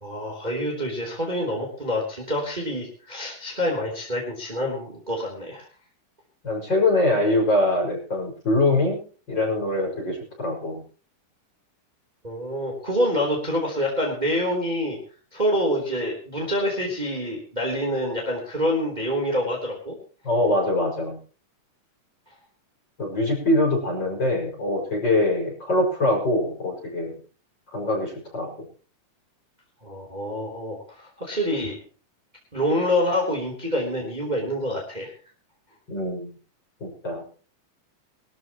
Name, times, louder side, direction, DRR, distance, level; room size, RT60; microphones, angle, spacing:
voice 1, 0.0-5.7 12.2-15.0 15.3-20.0 29.8-31.8 32.5-35.1, equal, 15° right, 0 dB, 3.4 m, -26 dB
voice 2, 6.4-9.0 9.3-10.8 20.2-21.2 23.0-27.2 27.7-28.5 35.9-36.3 36.8-37.2, left 2 dB, 35° left, -1 dB, 6.3 m, -23 dB
23.0 x 13.0 x 3.0 m, 0.39 s
omnidirectional pair, 3.7 m